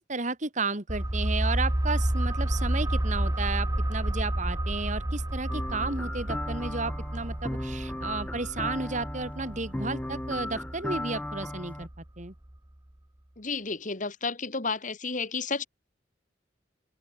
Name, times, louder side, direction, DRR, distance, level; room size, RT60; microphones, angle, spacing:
voice 1, 0.0-11.9 12.2-12.3, right 3 dB, 40° right, 2.5 m, -33 dB
sound 1, 0.9-12.3 12.5-12.6, right 1 dB, 20° right, 1.0 m, -30 dB
sound 2, 5.5-11.9, left 1 dB, 10° left, 0.5 m, -36 dB
voice 2, 13.4-15.7, left 4 dB, 45° left, 1.9 m, -32 dB
open air
head